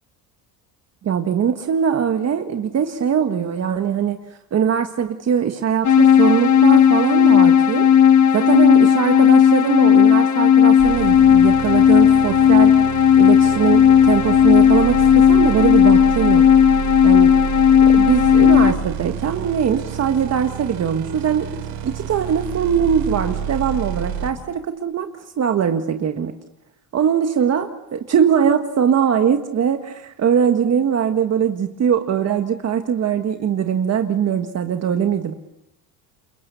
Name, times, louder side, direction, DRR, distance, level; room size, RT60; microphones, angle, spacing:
voice 1, 1.0-4.2 4.5-7.9 8.3-12.7 13.2-16.5 17.0-17.3 17.9-21.5 21.8-26.3 26.9-35.3, right 8 dB, 40° right, 6 dB, 1.6 m, -21 dB
sound 1, 5.8-18.7, left 8 dB, 45° left, 1.3 m, -13 dB
sound 2, 10.8-24.3, right 9 dB, 75° right, 5.7 m, -29 dB
29.0 x 22.5 x 7.0 m, 0.89 s
cardioid pair, 115°, 40 cm